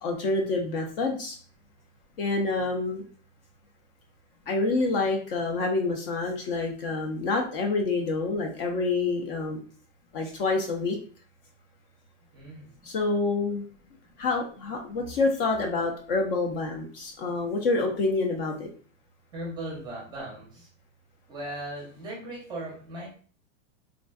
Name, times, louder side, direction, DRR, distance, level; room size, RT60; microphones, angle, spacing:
voice 1, 0.0-1.4 2.2-3.0 4.5-9.6 10.1-11.0 12.8-13.7 14.2-18.7, left 3 dB, 45° left, 2 dB, 0.5 m, -27 dB
voice 2, 12.3-12.9 19.3-20.7 21.3-23.1, right 1 dB, 10° right, -4 dB, 0.6 m, -38 dB
3.5 x 2.2 x 2.2 m, 0.42 s
supercardioid pair, 160°, 40 cm